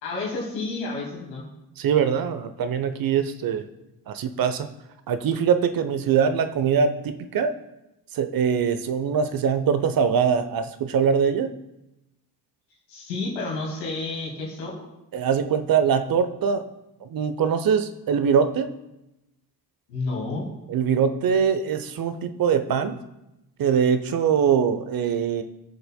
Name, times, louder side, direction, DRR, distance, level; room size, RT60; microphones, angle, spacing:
voice 1, 0.0-1.4 12.9-14.8 19.9-20.4, left 3 dB, 80° left, -2 dB, 2.4 m, -30 dB
voice 2, 1.8-3.7 4.1-4.7 5.1-7.5 8.1-11.5 15.1-16.6 17.0-18.7 20.7-23.0 23.6-25.4, right 7 dB, 45° right, 10 dB, 0.9 m, -22 dB
20.0 x 6.8 x 2.3 m, 0.93 s
hypercardioid pair, 45°, 48 cm